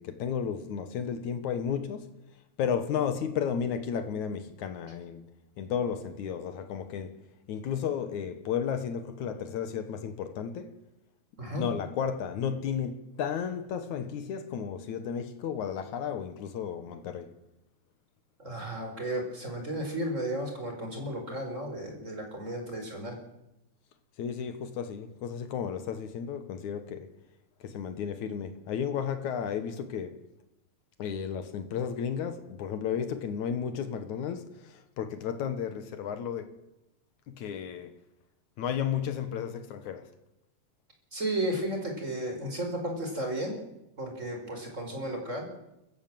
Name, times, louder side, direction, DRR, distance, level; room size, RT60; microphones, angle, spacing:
voice 1, 0.0-2.2 2.6-5.3 5.6-7.2 7.5-10.8 11.6-17.3 24.2-27.1 27.6-30.2 31.0-36.6 37.3-38.0 38.6-40.1, left 7 dB, 75° left, 2.7 m, -33 dB
voice 2, 18.4-23.2 41.1-43.6 44.0-45.5, right 1 dB, 25° right, 4.9 m, -33 dB
29.5 x 15.0 x 7.6 m
omnidirectional pair, 3.5 m